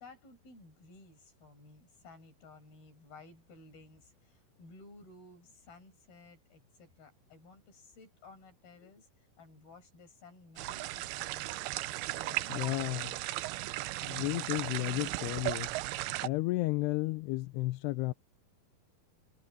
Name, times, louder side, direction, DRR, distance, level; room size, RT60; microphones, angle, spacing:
voice 1, 0.0-11.8 12.1-13.1 13.5-13.7, left 3 dB, 65° left, 8.4 m, -56 dB
sound 1, 10.6-16.3, right 17 dB, 80° right, 2.5 m, -36 dB
voice 2, 12.5-13.1 14.0-15.8 16.2-18.1, left 20 dB, 85° left, 2.8 m, -33 dB
omnidirectional pair, 4.7 m